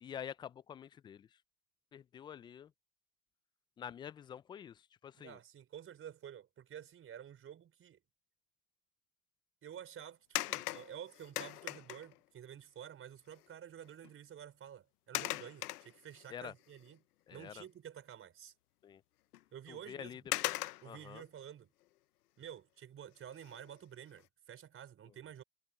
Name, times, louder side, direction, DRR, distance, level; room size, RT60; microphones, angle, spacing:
voice 1, 0.0-1.3 1.9-2.7 3.8-5.4 16.3-16.5 17.3-17.6 18.8-19.0 19.7-20.2 20.8-21.2, left 9 dB, 10° left, 0.4 m, -47 dB
voice 2, 5.2-8.0 9.6-17.0 17.3-18.5 19.5-20.2 20.8-21.7 22.4-25.4, right 9 dB, 30° right, 4.4 m, -51 dB
sound 1, 10.4-12.2 13.4-13.5 13.9-14.1 15.1-16.3 16.8-16.9 19.3-19.4 20.3-21.1 23.3-23.7 24.2-24.3, left 16 dB, 75° left, 0.8 m, -39 dB
hypercardioid pair, 105°, 46 cm